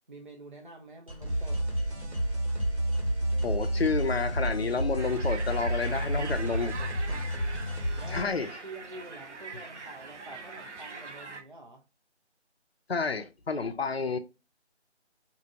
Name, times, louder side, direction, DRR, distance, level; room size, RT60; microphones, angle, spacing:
voice 1, 0.1-1.6 6.7-8.4 8.6-11.8, right 2 dB, 45° right, 0.4 m, -47 dB
sound 1, 1.1-8.4, equal, 30° right, 0.9 m, -42 dB
sound 2, 1.3-8.2, right 1 dB, 70° right, 1.7 m, -30 dB
voice 2, 3.4-6.8 8.1-8.5 12.9-14.2, left 4 dB, 60° left, 0.5 m, -30 dB
sound 3, 5.0-11.4, right 4 dB, 85° right, 0.7 m, -42 dB
2.9 x 2.6 x 2.4 m
figure-of-eight pair, 175°, 34 cm